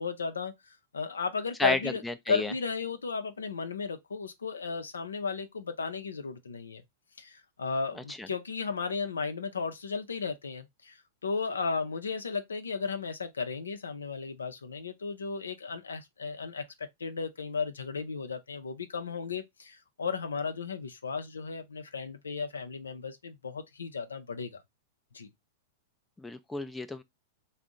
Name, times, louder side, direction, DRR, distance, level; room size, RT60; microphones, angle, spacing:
voice 1, 0.0-2.0 2.3-6.8 7.2-24.6 25.1-25.3, left 5 dB, 85° left, 0.5 m, -35 dB
voice 2, 1.6-2.5 8.0-8.3 26.2-27.0, left 2 dB, 10° left, 0.4 m, -32 dB
3.5 x 2.1 x 3.7 m
hypercardioid pair, 105°, 0 cm